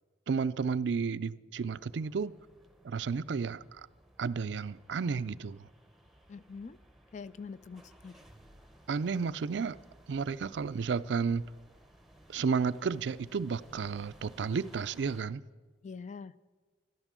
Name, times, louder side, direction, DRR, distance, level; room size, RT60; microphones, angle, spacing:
voice 1, 0.3-2.3 2.8-3.9 4.2-5.7 8.9-9.8 10.1-11.4 12.3-15.4, right 5 dB, 70° right, 0.4 m, -32 dB
sound 1, 1.7-15.2, right 1 dB, ahead, 0.8 m, -59 dB
voice 2, 6.3-6.8 7.1-8.1 15.8-16.3, left 5 dB, 40° left, 0.3 m, -44 dB
12.5 x 11.5 x 7.4 m
head